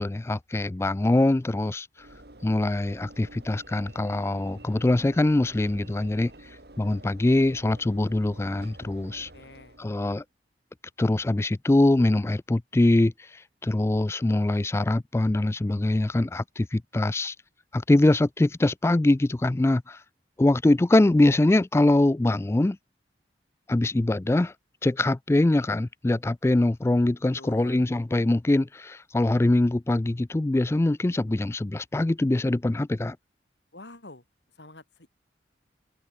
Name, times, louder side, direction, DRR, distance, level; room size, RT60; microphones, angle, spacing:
voice 1, 0.0-1.9 2.4-6.3 6.8-9.3 9.8-10.2 11.0-13.1 13.6-17.3 17.7-20.0 20.4-22.8 23.7-24.5 24.8-33.2, left 2 dB, 15° left, 0.3 m, -23 dB
Train / Engine / Alarm, 2.0-10.2, right 1 dB, 60° right, 2.5 m, -49 dB
voice 2, 9.3-9.8 27.3-27.9 33.7-34.2 34.6-35.1, left 2 dB, 75° left, 4.1 m, -47 dB
head